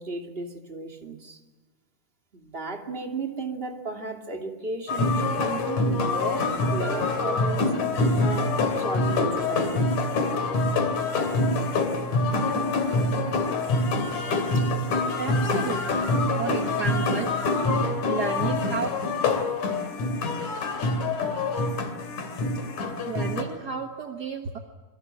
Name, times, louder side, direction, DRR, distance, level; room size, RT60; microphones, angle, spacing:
voice 1, 0.0-1.4 2.3-7.7 8.2-9.8, right 3 dB, 20° right, 4 dB, 2.4 m, -35 dB
sound 1, 4.9-23.4, left 2 dB, 65° left, 3.9 m, -25 dB
voice 2, 15.2-17.4 17.7-18.9 22.8-24.6, right 6 dB, 50° right, 5 dB, 1.3 m, -33 dB
26.5 x 23.0 x 7.7 m, 1.3 s
omnidirectional pair, 3.7 m